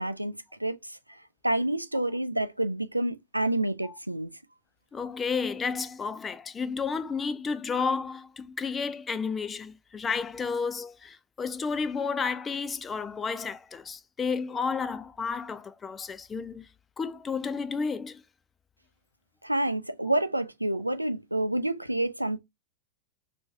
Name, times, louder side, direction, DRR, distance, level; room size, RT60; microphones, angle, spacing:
voice 1, 0.0-4.3 19.4-22.4, right 1 dB, 85° right, 0.4 m, -29 dB
voice 2, 4.9-16.7 17.0-18.2, left 5 dB, 20° left, 0.5 m, -32 dB
4.6 x 2.6 x 3.3 m
figure-of-eight pair, 90°, 0 cm